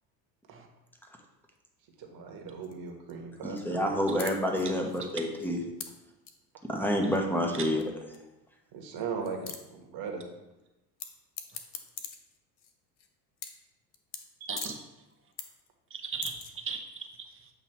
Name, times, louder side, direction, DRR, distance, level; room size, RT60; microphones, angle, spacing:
voice 1, 2.0-3.9 8.7-10.2 14.4-14.5, right 5 dB, 45° right, 2 dB, 1.5 m, -38 dB
sound 1, 2.6-3.1 3.4-3.6 3.9-4.0 4.2-5.8 6.2-6.3 7.1-7.2 7.8-7.9 8.1-8.2 8.4-8.5 9.0-9.1 9.2-9.6 11.0-11.1 11.4-13.1 13.4-13.6 13.9-14.2 14.6-14.7 15.1-15.7 16.0-16.5, left 8 dB, 90° left, 0.7 m, -41 dB
voice 2, 3.4-5.6 6.7-7.8, equal, 5° left, 1 dB, 1.1 m, -28 dB
voice 3, 14.5-14.9 15.9-17.5, right 5 dB, 25° right, 4 dB, 0.9 m, -38 dB
8.0 x 2.9 x 4.6 m, 1.0 s
hypercardioid pair, 75°, 50 cm